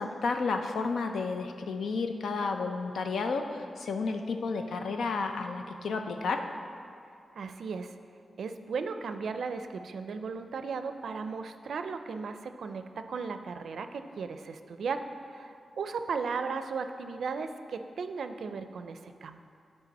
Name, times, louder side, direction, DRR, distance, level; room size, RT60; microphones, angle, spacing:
voice 1, 0.0-6.4, left 4 dB, 85° left, 5 dB, 0.6 m, -31 dB
voice 2, 7.4-7.9 8.4-19.4, right 5 dB, 75° right, 8 dB, 0.4 m, -36 dB
11.0 x 4.8 x 4.1 m, 2.4 s
wide cardioid pair, 110°, 0 cm